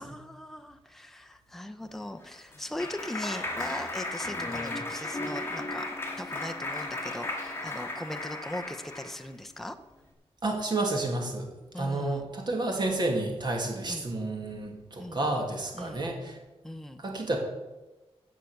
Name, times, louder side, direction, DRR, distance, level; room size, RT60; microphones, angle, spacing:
voice 1, 0.0-9.8 11.7-12.3 13.9-14.0 15.0-15.2 15.7-16.0 16.6-17.0, left 1 dB, 5° left, 8 dB, 0.6 m, -39 dB
Clapping, 2.0-9.2, left 2 dB, 20° left, 1.9 m, -35 dB
voice 2, 10.4-11.5 11.8-16.4 17.0-17.4, right 2 dB, 45° right, 1 dB, 2.4 m, -30 dB
16.0 x 5.9 x 6.5 m, 1.1 s
wide cardioid pair, 160°, 11 cm